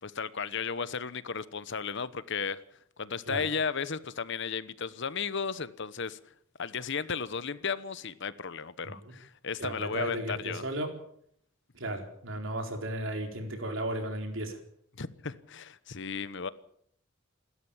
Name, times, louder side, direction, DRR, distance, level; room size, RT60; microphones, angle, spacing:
voice 1, 0.0-2.6 3.0-6.2 6.6-10.6 15.0-16.5, left 5 dB, 60° left, 1.0 m, -34 dB
voice 2, 9.6-10.9 11.7-14.6, right 1 dB, 65° right, 4.4 m, -35 dB
28.0 x 13.0 x 7.3 m
head